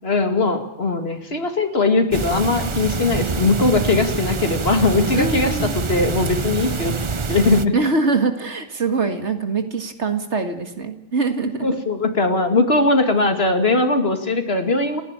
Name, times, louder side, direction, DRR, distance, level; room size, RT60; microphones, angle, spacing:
voice 1, 0.0-7.0 7.3-7.7 11.6-15.0, left 3 dB, 55° left, 7 dB, 2.3 m, -20 dB
sound 1, 2.1-7.6, right 4 dB, 30° right, 0.7 m, -25 dB
voice 2, 5.1-5.8 7.7-11.7, right 3 dB, 65° right, 7 dB, 2.1 m, -23 dB
29.5 x 11.0 x 8.8 m, 0.91 s
omnidirectional pair, 1.3 m